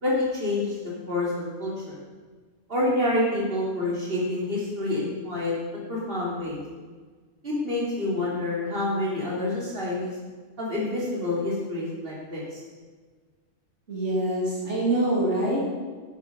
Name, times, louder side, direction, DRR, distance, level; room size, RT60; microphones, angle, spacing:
voice 1, 0.0-0.8 1.1-2.0 2.7-5.5 5.9-6.6 7.4-10.1 10.6-12.6, left 2 dB, 55° right, -5 dB, 3.3 m, -27 dB
voice 2, 13.9-15.6, right 1 dB, 85° right, -5 dB, 2.9 m, -25 dB
11.0 x 9.3 x 5.2 m, 1.5 s
omnidirectional pair, 1.2 m